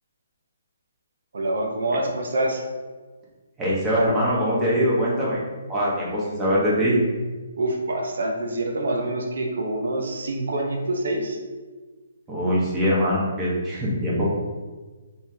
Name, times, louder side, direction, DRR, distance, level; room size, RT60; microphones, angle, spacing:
voice 1, 1.3-2.6 7.6-11.4, right 1 dB, 75° right, 2 dB, 0.8 m, -26 dB
voice 2, 3.6-5.4 5.7-7.0 12.3-14.3, equal, 15° right, -6 dB, 1.2 m, -22 dB
4.3 x 3.5 x 2.8 m, 1.3 s
hypercardioid pair, 155°, 0 cm